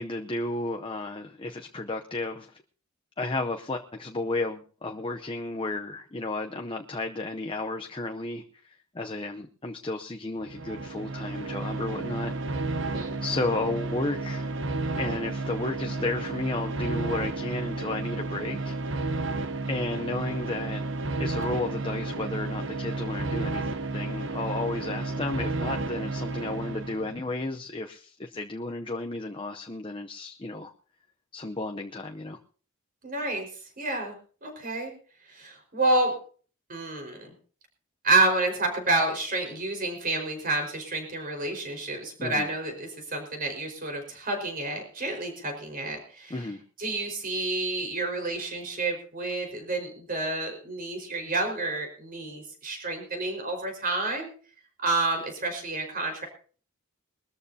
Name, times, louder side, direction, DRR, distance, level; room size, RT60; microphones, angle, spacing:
voice 1, 0.0-2.5 3.2-12.6 13.2-14.5 15.0-18.8 19.7-20.8 21.2-23.7 23.9-30.7 31.3-32.4 42.2-42.5 46.3-46.6, left 2 dB, 25° left, 4 dB, 0.7 m, -33 dB
sound 1, 10.4-27.3, right 3 dB, 60° right, 0.9 m, -32 dB
voice 2, 12.8-13.2 33.0-33.5 33.8-34.1 34.4-34.9 35.3-36.1 36.7-37.3 38.0-46.3 46.8-54.3 54.8-56.3, right 2 dB, 45° right, 4 dB, 4.9 m, -29 dB
22.5 x 13.5 x 2.8 m, 0.41 s
head